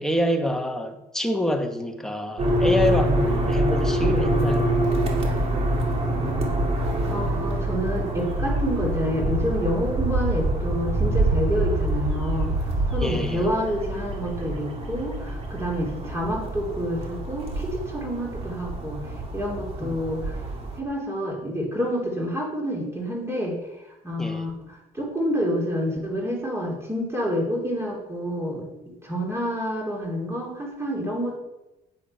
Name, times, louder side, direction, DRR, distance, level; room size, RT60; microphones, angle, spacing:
voice 1, 0.0-4.9 13.0-13.5 19.8-20.1 24.2-24.5, equal, 5° left, 4 dB, 1.4 m, -27 dB
sound 1, 2.4-20.8, right 1 dB, 35° right, 2.5 m, -25 dB
voice 2, 7.1-12.5 12.9-19.0 19.3-20.3 20.8-23.6 24.0-24.5 24.9-31.4, equal, 15° right, -2 dB, 3.3 m, -28 dB
9.0 x 8.3 x 5.6 m, 0.96 s
cardioid pair, 110°, 17 cm